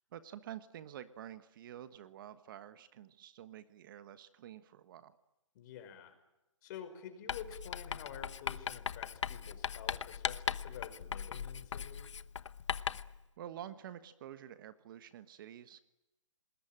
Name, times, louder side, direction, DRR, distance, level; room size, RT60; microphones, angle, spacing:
voice 1, 0.1-5.2 13.4-15.8, right 11 dB, 40° right, 12 dB, 1.3 m, -49 dB
voice 2, 5.5-6.2 6.6-12.1, left 8 dB, 35° left, 8 dB, 5.2 m, -49 dB
Writing, 7.3-13.2, left 7 dB, 65° left, 1.0 m, -39 dB
28.5 x 20.5 x 8.9 m, 0.95 s
hypercardioid pair, 145°, 16 cm